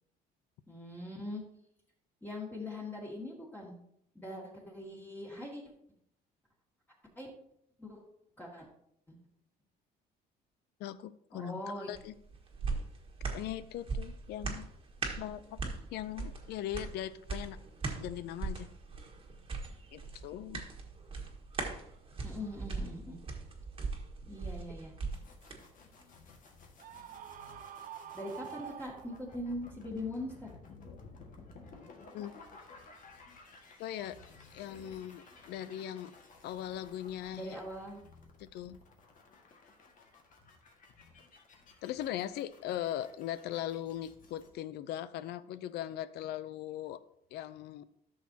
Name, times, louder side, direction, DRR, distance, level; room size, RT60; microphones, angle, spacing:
voice 1, 0.7-1.4 2.2-3.8 4.1-5.6 7.2-7.3 7.8-8.0 8.4-8.7 9.1-9.2 11.3-11.9 22.2-23.2 24.3-24.9 28.1-30.5 37.3-38.0, left 1 dB, 10° left, -4 dB, 2.2 m, -41 dB
voice 2, 10.8-12.2 13.3-14.7 15.2-17.6 18.0-18.7 19.9-20.6 32.1-32.3 33.8-34.2 34.5-36.1 36.4-37.6 38.4-38.8 41.8-47.0 47.3-47.8, left 12 dB, 75° left, 15 dB, 0.5 m, -40 dB
sound 1, 11.9-25.6 26.0-26.1, right 4 dB, 30° right, 1.6 m, -40 dB
sound 2, 25.1-44.5, left 3 dB, 50° left, 1.8 m, -56 dB
Screaming, 26.8-29.5, right 8 dB, 55° right, 0.7 m, -47 dB
12.5 x 6.3 x 2.8 m, 0.73 s
cardioid pair, 110°, 17 cm